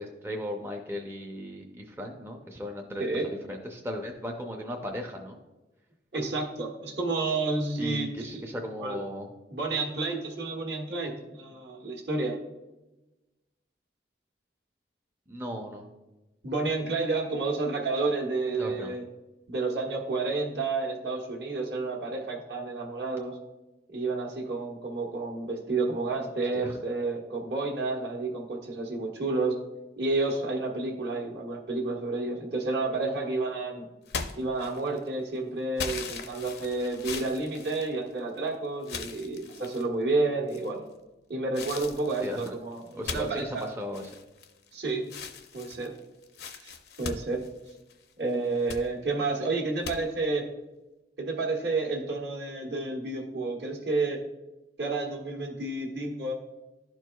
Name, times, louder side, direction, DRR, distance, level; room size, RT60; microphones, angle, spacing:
voice 1, 0.0-5.4 7.8-9.3 15.3-15.9 18.5-18.9 26.5-26.7 42.2-42.5 43.0-44.1, equal, 15° right, 1 dB, 0.5 m, -36 dB
voice 2, 3.0-3.3 6.1-8.4 8.8-9.0 9.5-12.4 16.4-19.0 19.5-23.4 23.9-29.6 30.0-33.9 34.3-40.8 41.3-43.7 44.7-45.1 45.5-45.9 46.5-46.7 47.0-47.4 48.2-50.4 51.2-54.2 54.8-56.3, right 3 dB, 70° right, 1 dB, 1.3 m, -30 dB
sound 1, 34.1-35.1 35.8-38.4 38.8-39.9 40.5-40.9 41.5-44.7 45.0-48.0 48.4-48.8 49.8-50.0, left 5 dB, 60° left, 0.6 m, -39 dB
11.5 x 4.5 x 2.3 m, 1.1 s
head